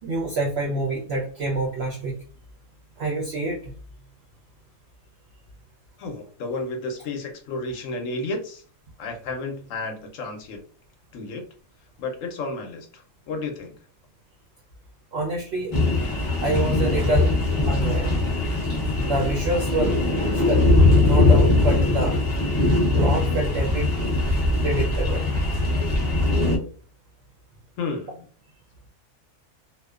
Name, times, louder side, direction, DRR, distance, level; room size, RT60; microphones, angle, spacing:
voice 1, 0.0-2.1 3.0-3.7 15.1-15.7 16.4-17.3 17.6-18.1 19.0-19.9 20.3-22.2 22.9-23.9 24.6-25.2, right 2 dB, 65° right, -1 dB, 0.6 m, -27 dB
voice 2, 6.0-8.6 9.0-10.6 11.1-11.4 12.0-13.7 27.8-28.3, left 3 dB, 70° left, 3 dB, 0.9 m, -32 dB
sound 1, 15.7-26.6, left 2 dB, 35° left, 0.5 m, -21 dB
2.6 x 2.1 x 2.3 m, 0.42 s
omnidirectional pair, 1.5 m